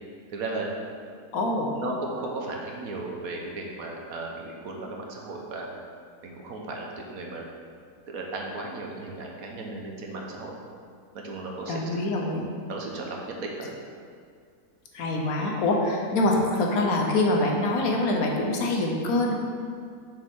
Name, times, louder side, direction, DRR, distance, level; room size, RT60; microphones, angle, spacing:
voice 1, 0.3-0.7 1.7-5.7 6.2-7.4 8.1-10.5 11.1-12.1 12.7-13.5, right 2 dB, 70° right, 0 dB, 1.3 m, -35 dB
voice 2, 1.3-1.7 11.7-12.4 14.9-19.3, left 2 dB, 70° left, 0 dB, 1.3 m, -25 dB
6.7 x 6.4 x 3.7 m, 2.2 s
omnidirectional pair, 1.6 m